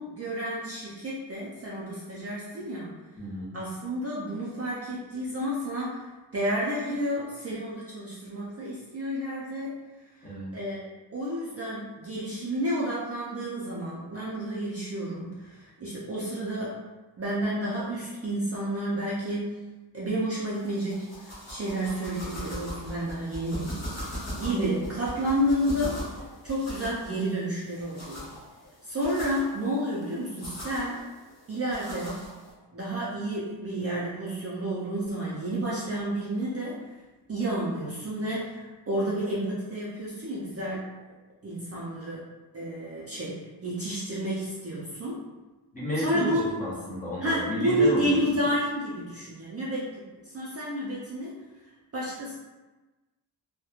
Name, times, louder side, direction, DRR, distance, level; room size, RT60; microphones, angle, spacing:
voice 1, 0.0-2.9 3.5-6.1 6.3-9.7 10.5-16.7 17.2-19.5 19.9-23.8 24.3-26.0 26.4-28.3 28.8-31.0 31.5-32.3 32.7-36.8 37.3-40.9 41.4-42.2 42.5-45.2 46.0-46.4 47.2-51.3 51.9-52.3, right 1 dB, 35° right, -7 dB, 0.4 m, -30 dB
voice 2, 3.2-3.6 10.2-10.5 45.7-48.4, left 1 dB, 20° left, -7 dB, 0.6 m, -32 dB
sound 1, 20.5-32.5, equal, 35° left, 1.0 m, -40 dB
2.9 x 2.1 x 2.3 m, 1.2 s
wide cardioid pair, 170°, 45 cm